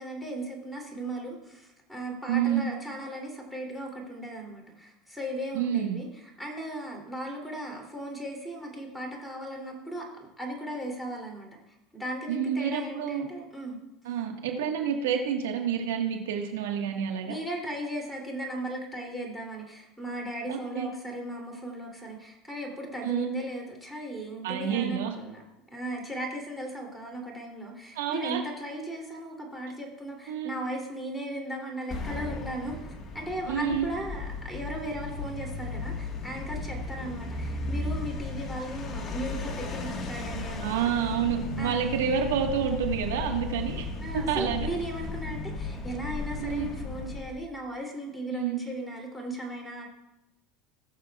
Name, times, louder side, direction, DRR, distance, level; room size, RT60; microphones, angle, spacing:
voice 1, 0.0-6.1 6.4-11.5 11.9-13.8 17.2-25.4 25.7-32.8 33.1-40.8 41.6-41.9 44.0-49.9, right 1 dB, 5° left, -1 dB, 2.8 m, -37 dB
voice 2, 2.3-2.7 5.5-6.0 12.3-13.3 14.0-17.4 20.5-20.9 23.0-23.3 24.4-25.1 27.9-28.4 30.3-30.6 33.5-33.9 40.6-43.9 44.1-44.7 46.4-46.7 48.3-48.6, right 8 dB, 85° right, 3 dB, 1.4 m, -28 dB
sound 1, 31.9-47.4, left 3 dB, 30° left, 1.5 m, -35 dB
19.5 x 6.8 x 2.3 m, 0.91 s
supercardioid pair, 110°, 0 cm